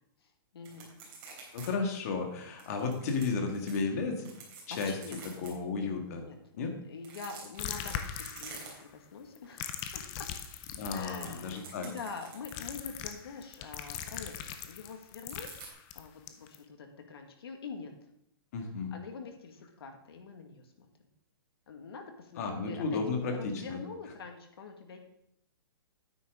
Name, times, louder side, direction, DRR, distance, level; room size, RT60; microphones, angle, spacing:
voice 1, 0.2-1.0 4.7-5.5 5.8-5.9 6.2-10.3 10.9-14.3 14.6-15.5 15.9-17.9 18.9-20.9 21.7-25.0, left 5 dB, 80° left, 4 dB, 1.9 m, -45 dB
sound 1, 0.6-1.7 2.0-2.1 2.6-3.8 4.2-5.5 6.9-9.1 9.4-9.6 10.0-12.7 15.3-15.7, right 5 dB, 35° right, 3.6 m, -49 dB
voice 2, 1.5-4.3 4.7-5.0 5.4-6.2 6.6-6.7 10.8-11.9 18.5-18.9 22.4-23.8, left 4 dB, 40° left, 3 dB, 1.9 m, -33 dB
sound 2, 7.6-8.9 9.4-11.6 12.4-16.6, left 9 dB, 25° left, 0.5 m, -40 dB
9.8 x 9.2 x 3.7 m, 0.77 s
hypercardioid pair, 170°, 13 cm